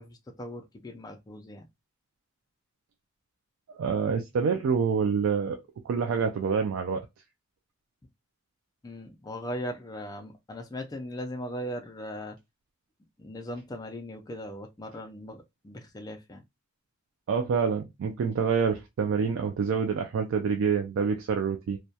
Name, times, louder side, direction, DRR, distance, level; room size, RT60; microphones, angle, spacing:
voice 1, 0.0-1.7 8.8-12.4 13.2-16.4, equal, 20° left, 0.3 m, -39 dB
voice 2, 3.7-5.6 5.8-7.1 17.3-21.8, right 6 dB, 70° right, 0.3 m, -27 dB
2.2 x 2.2 x 2.6 m
head